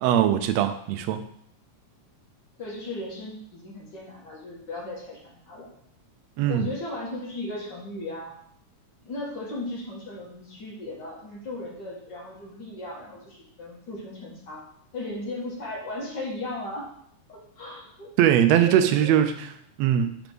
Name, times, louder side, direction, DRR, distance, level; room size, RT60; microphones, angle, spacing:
voice 1, 0.0-1.2 6.4-6.7 18.2-19.5 19.8-20.2, right 10 dB, 75° right, 8 dB, 1.6 m, -21 dB
voice 2, 2.6-5.7 6.4-8.3 9.0-14.7 14.9-16.9 17.3-18.1 18.6-19.2, left 2 dB, 45° left, -3 dB, 1.8 m, -36 dB
5.2 x 5.1 x 6.0 m, 0.70 s
omnidirectional pair, 3.5 m